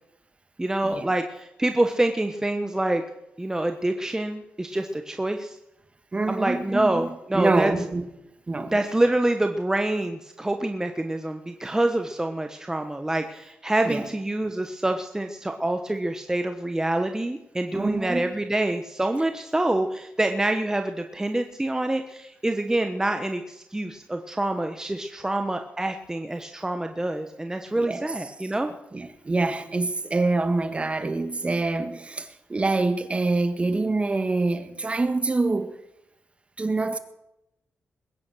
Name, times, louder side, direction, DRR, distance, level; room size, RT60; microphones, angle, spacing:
voice 1, 0.6-3.0 3.4-5.6 6.3-7.7 8.7-28.7, right 1 dB, 15° right, 1.2 m, -26 dB
voice 2, 6.1-8.0 8.5-8.8 13.8-14.1 17.7-18.3 27.7-28.1 28.9-35.8 36.6-37.0, right 3 dB, 30° right, 1.6 m, -26 dB
21.0 x 9.8 x 6.3 m
cardioid pair, 65°, 4 cm